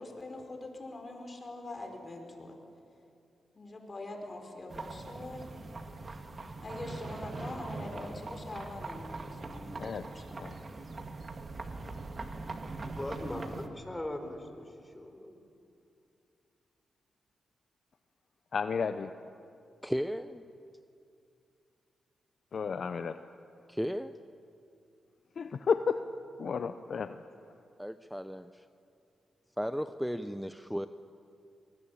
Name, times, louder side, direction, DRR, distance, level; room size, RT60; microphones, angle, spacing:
voice 1, 0.0-2.6 3.5-5.6 6.1-6.3 6.6-10.2, left 2 dB, 40° left, 3 dB, 5.2 m, -43 dB
sound 1, 4.7-13.7, right 3 dB, 45° right, 2.2 m, -42 dB
voice 2, 12.8-15.4, left 1 dB, 15° left, 6 dB, 4.3 m, -40 dB
voice 3, 18.5-19.1 22.5-23.2 25.4-26.0 26.4-27.2, left 6 dB, 65° left, 10 dB, 0.8 m, -32 dB
voice 4, 19.8-20.5 23.7-24.1 27.8-28.6 29.6-30.9, equal, ahead, 11 dB, 0.8 m, -35 dB
23.5 x 20.0 x 8.7 m, 2.5 s
supercardioid pair, 45°, 0 cm